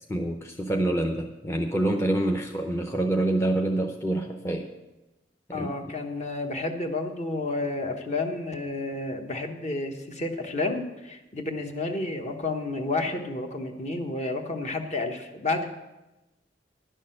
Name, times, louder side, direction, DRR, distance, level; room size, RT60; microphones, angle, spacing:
voice 1, 0.1-4.7 5.5-5.9, right 1 dB, 15° left, 2 dB, 0.7 m, -27 dB
voice 2, 5.5-15.7, left 2 dB, 40° left, 4 dB, 1.1 m, -30 dB
11.0 x 6.4 x 7.6 m, 1.0 s
head